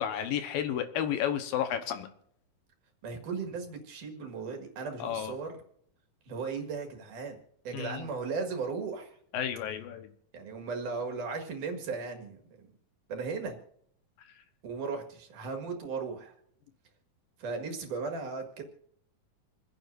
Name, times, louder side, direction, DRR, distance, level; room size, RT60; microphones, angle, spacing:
voice 1, 0.0-2.1 5.0-5.3 7.7-8.0 9.3-10.1, left 9 dB, 75° left, 8 dB, 2.8 m, -32 dB
voice 2, 3.0-5.6 6.3-7.4 7.6-9.2 10.3-12.4 13.1-13.6 14.6-16.3 17.4-18.6, right 4 dB, 60° right, 4 dB, 3.3 m, -36 dB
28.5 x 10.0 x 2.6 m, 0.68 s
omnidirectional pair, 4.2 m